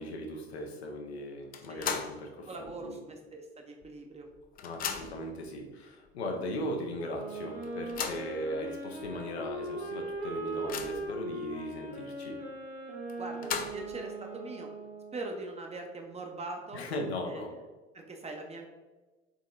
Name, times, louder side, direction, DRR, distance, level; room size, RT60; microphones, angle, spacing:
voice 1, 0.0-3.0 4.6-12.4 16.7-17.5, left 1 dB, 80° left, 2 dB, 0.6 m, -38 dB
sound 1, 1.5-2.3 2.7-2.8 3.8-3.9 4.2-5.3 6.1-6.2 6.6-6.7 7.6-8.3 9.0-9.1 9.5-9.6 10.1-11.1 13.1-14.0, left 7 dB, 30° left, 0.4 m, -37 dB
voice 2, 2.4-4.3 13.2-14.7 15.1-16.8 17.3-17.6 17.9-18.7, right 2 dB, 20° right, 3 dB, 0.6 m, -42 dB
Wind instrument woodwind instrument, 6.9-15.3, right 2 dB, 85° right, 1.3 m, -39 dB
4.0 x 3.6 x 2.4 m, 1.2 s
figure-of-eight pair, 60°, 32 cm